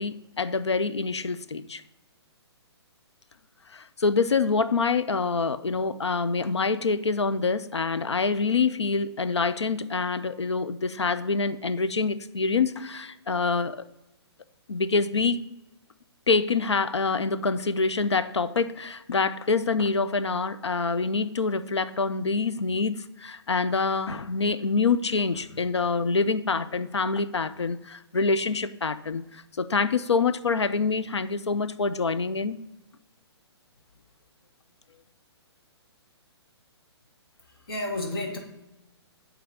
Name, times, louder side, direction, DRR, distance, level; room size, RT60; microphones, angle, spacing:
voice 1, 0.0-1.8 3.7-13.8 14.7-15.4 16.3-32.6, left 4 dB, 80° left, 0.5 m, -26 dB
voice 2, 37.5-38.4, left 2 dB, 55° left, 1.7 m, -31 dB
8.8 x 3.5 x 4.9 m
figure-of-eight pair, 125°, 14 cm